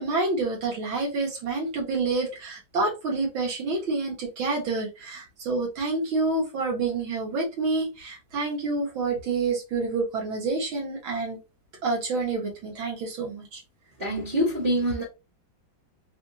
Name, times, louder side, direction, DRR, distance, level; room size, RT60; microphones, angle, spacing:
voice 1, 0.0-11.4 11.8-13.6, right 3 dB, 80° right, 2.2 m, -28 dB
voice 2, 14.0-15.0, equal, 30° right, 1.2 m, -25 dB
4.2 x 2.6 x 2.7 m
omnidirectional pair, 2.1 m